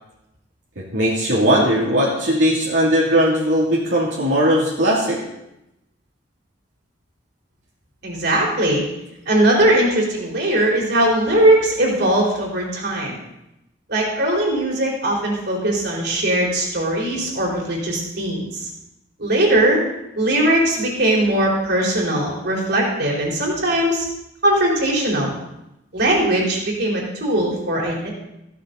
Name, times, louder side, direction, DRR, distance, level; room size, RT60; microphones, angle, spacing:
voice 1, 0.8-5.2, equal, 85° right, -6 dB, 2.8 m, -18 dB
voice 2, 8.0-8.9 9.3-13.2 13.9-18.7 19.2-19.8 20.2-24.0 24.4-25.4 25.9-28.1, right 1 dB, 60° right, -2 dB, 4.0 m, -20 dB
15.0 x 12.5 x 4.0 m, 0.88 s
head